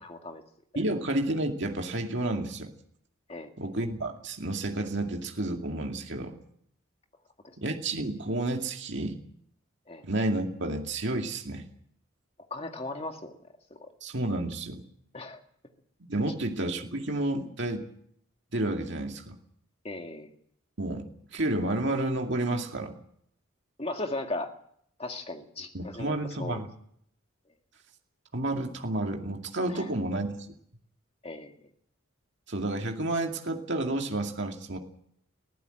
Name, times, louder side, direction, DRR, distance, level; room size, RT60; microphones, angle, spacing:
voice 1, 0.0-0.4 3.3-3.5 7.4-7.6 9.9-10.0 12.5-13.3 13.7-13.9 15.1-15.4 19.8-20.3 23.8-24.5 25.0-26.6 29.7-29.9 31.2-31.6, left 2 dB, 30° left, 4 dB, 2.0 m, -37 dB
voice 2, 0.8-2.7 3.6-6.4 7.6-9.2 10.0-11.6 14.0-14.8 16.1-17.8 18.5-19.4 20.8-21.1 21.3-22.9 25.7-26.7 28.3-30.4 32.5-34.8, right 2 dB, 55° right, 3 dB, 2.3 m, -30 dB
22.0 x 15.5 x 8.0 m, 0.69 s
head